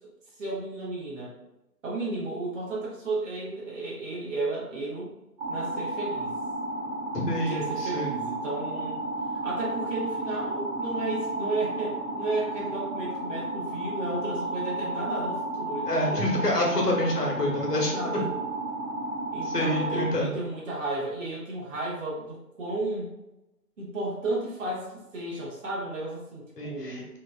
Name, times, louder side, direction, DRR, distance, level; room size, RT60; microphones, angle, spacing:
voice 1, 0.4-1.3 1.8-5.1 5.5-6.3 7.3-9.0 9.4-16.3 17.9-18.3 19.3-23.1 23.8-27.1, right 2 dB, 50° right, -6 dB, 0.8 m, -33 dB
sound 1, 5.4-20.1, right 2 dB, 30° right, 1.1 m, -32 dB
voice 2, 7.1-8.2 15.9-18.2 19.4-20.3 26.6-27.0, left 1 dB, 85° left, -1 dB, 1.0 m, -27 dB
2.9 x 2.2 x 2.3 m, 0.95 s
figure-of-eight pair, 160°, 46 cm